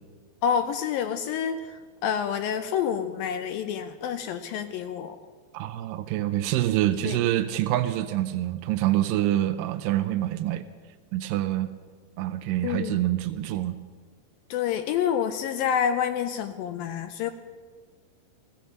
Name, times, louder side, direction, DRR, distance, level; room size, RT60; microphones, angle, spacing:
voice 1, 0.4-5.2 7.0-7.2 12.6-13.0 14.5-17.3, left 8 dB, 80° left, 9 dB, 2.2 m, -28 dB
voice 2, 5.5-10.6 11.1-11.7 12.2-13.8, right 14 dB, 85° right, 10 dB, 2.0 m, -26 dB
16.0 x 15.0 x 5.3 m, 1.5 s
omnidirectional pair, 4.5 m